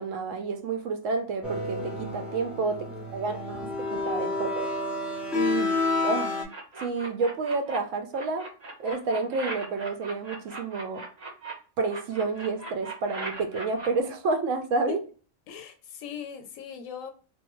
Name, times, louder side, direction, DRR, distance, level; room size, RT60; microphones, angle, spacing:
voice 1, 0.0-2.9 3.1-4.7 5.3-5.8 6.0-6.4 6.8-8.5 8.8-11.0 11.8-15.0, right 3 dB, 80° right, 0.9 m, -29 dB
sound 1, 1.4-6.4, left 3 dB, ahead, 0.4 m, -29 dB
sound 2, 6.5-7.8 8.1-11.5 11.9-13.9, right 3 dB, 40° right, 0.8 m, -38 dB
voice 2, 15.5-17.1, left 8 dB, 85° left, 1.0 m, -39 dB
2.6 x 2.1 x 2.9 m
omnidirectional pair, 1.3 m